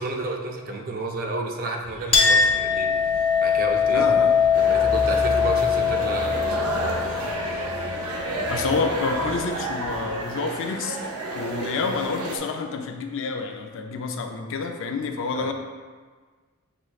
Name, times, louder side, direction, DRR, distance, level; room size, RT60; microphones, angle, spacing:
voice 1, 0.0-2.9 3.4-4.1 4.6-7.7 15.3-15.5, right 2 dB, 40° right, 2 dB, 0.4 m, -32 dB
sound 1, 1.8-10.2, equal, 60° right, 0.9 m, -37 dB
Chink clink, 2.1-9.2, left 6 dB, 25° left, 0.7 m, -22 dB
voice 2, 3.9-4.3 8.5-11.0 11.3-15.5, left 4 dB, 60° left, 5 dB, 0.4 m, -28 dB
sound 2, 4.5-12.4, right 2 dB, 90° right, 0.6 m, -31 dB
6.2 x 3.1 x 2.3 m, 1.5 s
head